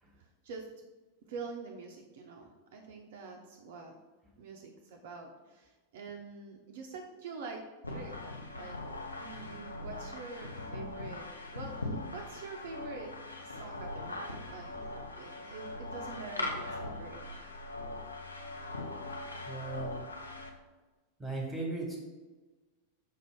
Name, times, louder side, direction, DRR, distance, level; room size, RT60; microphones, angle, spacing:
voice 1, 0.2-0.7 1.3-3.9 4.4-7.6 7.9-8.8 9.1-13.2 13.4-14.9 15.2-17.3, right 4 dB, 55° right, 2 dB, 0.4 m, -46 dB
sound 1, 7.8-20.5, left 2 dB, 80° left, 0.5 m, -41 dB
voice 2, 19.4-20.3 21.2-22.0, right 2 dB, 5° right, -1 dB, 1.3 m, -38 dB
5.3 x 2.6 x 3.4 m, 1.2 s
figure-of-eight pair, 90°, 0 cm